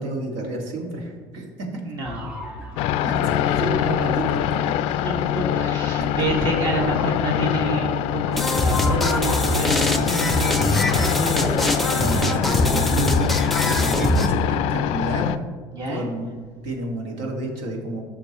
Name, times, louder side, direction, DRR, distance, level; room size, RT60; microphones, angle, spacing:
voice 1, 0.0-1.8 3.0-4.4 4.7-4.8 11.9-14.4 14.7-15.4 15.9-18.0, right 2 dB, 75° right, 1 dB, 1.9 m, -30 dB
voice 2, 1.9-2.5 2.8-3.0 5.0-12.0 15.7-16.1, right 2 dB, 45° right, -1 dB, 1.7 m, -29 dB
sound 1, 2.0-6.0, equal, 15° right, 2.0 m, -36 dB
sound 2, 2.8-15.4, left 11 dB, 65° left, 0.4 m, -24 dB
sound 3, 8.3-14.3, left 1 dB, ahead, 0.6 m, -22 dB
13.0 x 6.0 x 3.0 m, 1.5 s
cardioid pair, 125°, 10 cm